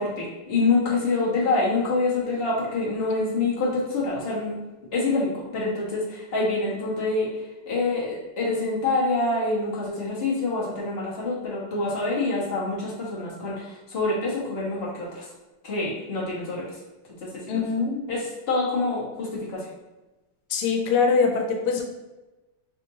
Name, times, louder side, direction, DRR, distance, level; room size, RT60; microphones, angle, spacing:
voice 1, 0.0-4.6 4.9-7.3 7.7-15.3 15.6-16.8 17.2-17.6 18.1-19.7, left 3 dB, 40° left, -6 dB, 0.9 m, -26 dB
voice 2, 17.5-17.9 20.5-21.8, left 5 dB, 90° left, 3 dB, 1.6 m, -23 dB
5.0 x 2.8 x 2.7 m, 1.1 s
omnidirectional pair, 2.4 m